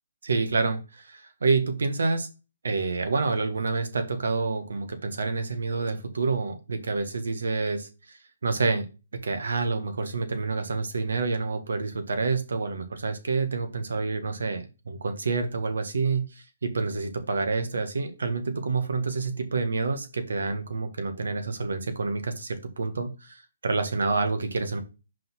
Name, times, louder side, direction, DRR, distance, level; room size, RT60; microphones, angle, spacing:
voice 1, 0.2-2.3 2.6-8.8 9.2-24.8, right 4 dB, 75° right, 8 dB, 1.4 m, -28 dB
5.3 x 3.8 x 5.8 m, 0.30 s
hypercardioid pair, 145°, 0 cm